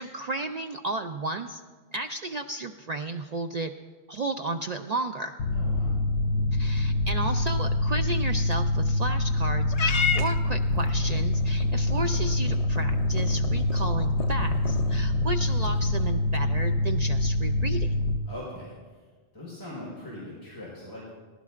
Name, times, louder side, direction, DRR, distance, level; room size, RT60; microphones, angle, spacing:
voice 1, 0.0-1.6 1.9-3.7 4.1-5.4 6.5-18.0, right 2 dB, 55° right, 6 dB, 0.4 m, -33 dB
Mechanical fan, 5.4-18.2, left 1 dB, 85° left, 1.1 m, -25 dB
voice 2, 5.5-5.9 18.3-18.7 19.3-21.1, left 1 dB, 20° left, -8 dB, 4.5 m, -40 dB
Purr / Meow, 9.7-16.2, left 6 dB, 45° left, 0.5 m, -34 dB
19.0 x 16.0 x 2.5 m, 1.4 s
omnidirectional pair, 1.1 m